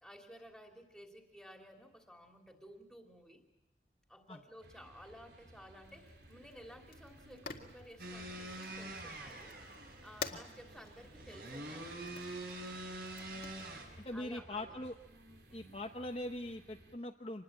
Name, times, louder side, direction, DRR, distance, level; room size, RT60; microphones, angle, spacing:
voice 1, 0.0-3.4 4.1-9.6 10.0-12.3 14.1-14.8 15.5-15.8, equal, 5° left, 2 dB, 3.0 m, -55 dB
sound 1, 4.6-17.0, right 1 dB, 80° right, 3.4 m, -59 dB
Fire, 5.8-14.2, left 5 dB, 60° left, 2.0 m, -51 dB
sound 2, 8.0-13.8, right 1 dB, 55° right, 6.0 m, -46 dB
voice 2, 14.0-14.9 15.5-17.4, left 1 dB, 35° left, 3 dB, 1.0 m, -42 dB
26.5 x 20.5 x 8.8 m, 0.96 s
head